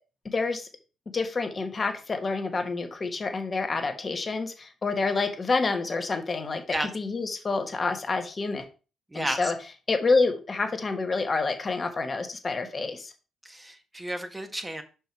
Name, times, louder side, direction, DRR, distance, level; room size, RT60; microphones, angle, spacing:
voice 1, 0.3-0.7 1.1-8.6 9.1-9.5 9.9-13.1, left 3 dB, 40° left, 6 dB, 1.4 m, -28 dB
voice 2, 13.5-14.8, right 1 dB, 15° right, 6 dB, 1.3 m, -32 dB
5.4 x 4.7 x 4.7 m, 0.33 s
hypercardioid pair, 50°, 0 cm